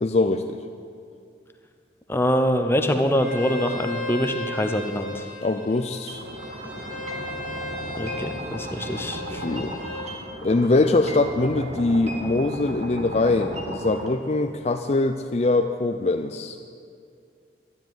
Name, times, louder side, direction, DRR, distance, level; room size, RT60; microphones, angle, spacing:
voice 1, 0.0-0.6 5.4-6.2 9.4-9.7 10.4-16.6, left 2 dB, 35° left, 7 dB, 0.5 m, -22 dB
voice 2, 2.1-5.3 8.0-9.4, equal, 15° left, 6 dB, 0.8 m, -24 dB
Bowed string instrument, 3.1-10.1, left 2 dB, 70° right, 3.6 m, -36 dB
sound 1, 6.1-14.1, right 1 dB, 35° right, 1.7 m, -36 dB
13.0 x 9.9 x 9.1 m, 2.3 s
head